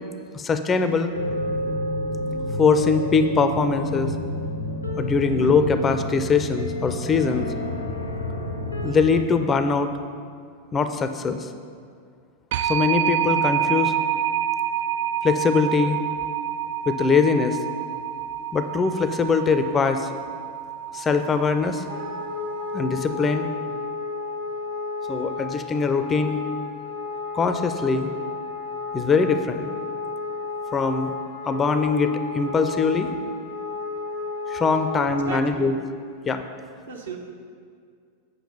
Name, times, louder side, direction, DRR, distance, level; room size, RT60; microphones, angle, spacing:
voice 1, 0.3-1.1 2.6-4.1 4.9-7.5 8.8-9.9 10.7-11.5 12.6-13.9 15.2-16.0 16.9-17.6 18.5-20.1 20.9-21.8 22.7-23.5 25.1-26.4 27.3-28.1 28.9-29.7 30.7-31.2 31.4-33.2 34.5-35.7 36.3-36.4, left 5 dB, 20° left, 9 dB, 0.5 m, -22 dB
sound 1, 1.1-9.2, left 1 dB, 85° left, 0.9 m, -29 dB
sound 2, 12.5-23.1, right 10 dB, 50° right, 0.3 m, -28 dB
Wind instrument woodwind instrument, 21.9-35.4, left 4 dB, 85° right, 2.0 m, -32 dB
voice 2, 35.2-35.7 36.9-37.2, right 6 dB, 70° right, 0 dB, 1.2 m, -35 dB
8.4 x 5.8 x 5.5 m, 2.1 s
figure-of-eight pair, 90°, 0 cm